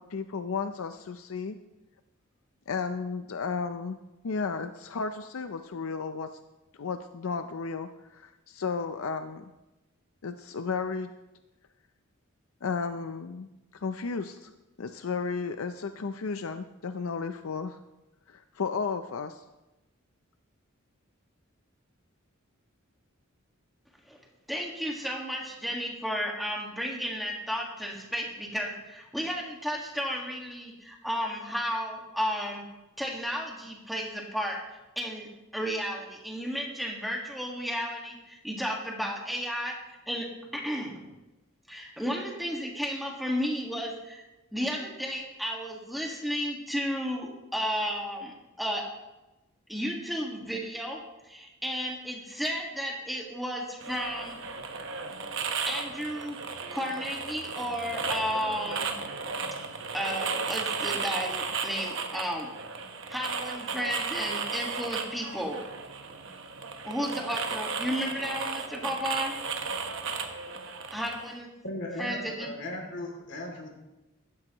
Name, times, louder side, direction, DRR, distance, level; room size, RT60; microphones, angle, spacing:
voice 1, 0.0-1.6 2.7-4.0 4.2-6.3 6.8-9.4 10.2-11.1 12.6-14.5 14.8-17.8 18.3-19.4, left 5 dB, 75° left, 9 dB, 0.5 m, -33 dB
voice 2, 24.5-32.6 33.0-34.6 34.9-35.3 35.5-39.7 40.1-40.3 40.5-40.9 41.7-44.2 44.5-48.8 49.7-51.0 51.3-54.4 55.6-56.4 56.7-58.9 59.9-62.5 63.1-65.6 66.8-69.3 70.9-71.5 72.0-72.5, equal, ahead, -1 dB, 1.7 m, -33 dB
sound 1, 53.8-71.3, right 5 dB, 60° right, 1.2 m, -35 dB
voice 3, 71.6-73.7, left 1 dB, 55° left, 1 dB, 2.6 m, -37 dB
15.5 x 12.5 x 3.0 m, 1.0 s
head